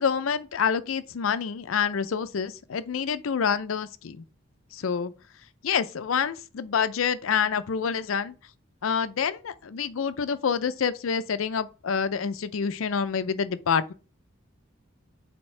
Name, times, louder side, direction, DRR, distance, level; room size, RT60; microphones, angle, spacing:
voice 1, 0.0-4.2 4.7-5.1 5.6-8.3 8.8-13.9, left 6 dB, 85° left, 0.5 m, -27 dB
7.1 x 4.4 x 3.2 m
head